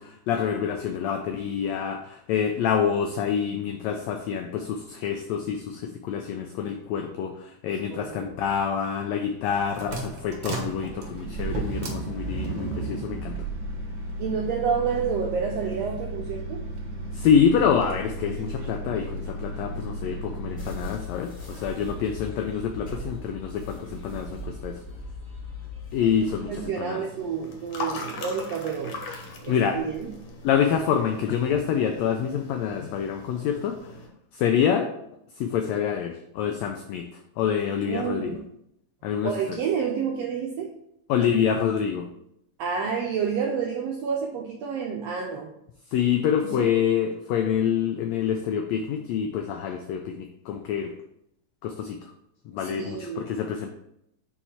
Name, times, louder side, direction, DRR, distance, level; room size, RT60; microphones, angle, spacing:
voice 1, 0.0-13.4 17.1-24.8 25.9-27.0 29.5-29.8 30.4-33.8 34.3-34.9 35.4-37.1 37.4-38.4 39.0-39.6 41.1-42.1 45.9-50.9 51.6-52.0 52.5-53.7, left 8 dB, 85° left, 5 dB, 1.5 m, -26 dB
voice 2, 7.9-8.3 14.2-16.7 26.5-29.0 29.4-30.1 37.9-38.4 39.2-40.7 42.6-45.5 46.4-46.7 52.6-53.3, right 6 dB, 85° right, 1 dB, 1.4 m, -29 dB
sound 1, 9.3-20.9, right 2 dB, 65° right, 1.1 m, -34 dB
sound 2, 20.6-26.7, left 1 dB, 25° left, 2.1 m, -39 dB
sound 3, 27.0-34.1, left 3 dB, 65° left, 2.1 m, -40 dB
5.5 x 4.5 x 4.3 m, 0.78 s
omnidirectional pair, 3.6 m